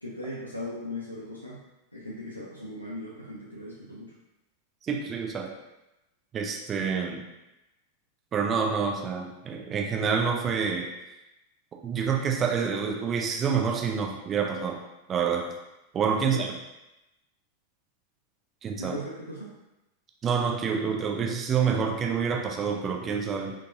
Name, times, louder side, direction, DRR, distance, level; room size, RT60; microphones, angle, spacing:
voice 1, 0.0-1.6 1.9-4.1 16.2-16.5 18.8-19.5, left 1 dB, 85° left, -6 dB, 0.5 m, -38 dB
voice 2, 4.9-5.5 6.3-7.2 8.3-10.9 11.8-14.8 15.1-15.5 15.9-16.5 18.6-18.9 20.2-23.5, right 6 dB, 25° right, 1 dB, 0.5 m, -27 dB
3.9 x 2.3 x 2.5 m, 0.96 s
figure-of-eight pair, 90°, 0 cm